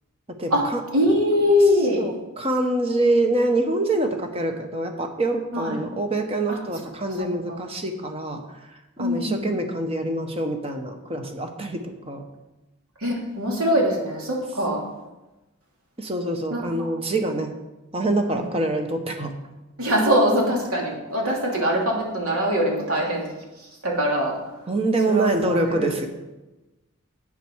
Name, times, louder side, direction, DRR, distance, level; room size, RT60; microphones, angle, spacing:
voice 1, 0.3-0.8 2.0-8.4 9.0-12.3 16.0-17.5 17.9-19.4 24.7-26.1, right 2 dB, 25° right, 5 dB, 1.1 m, -25 dB
voice 2, 0.9-2.0 5.5-5.8 6.5-6.6 7.2-7.6 9.0-9.5 13.0-14.8 16.5-16.9 18.0-18.4 19.8-23.3 23.8-24.3 25.1-26.1, equal, 80° right, -2 dB, 2.9 m, -23 dB
8.6 x 7.7 x 6.3 m, 1.0 s
head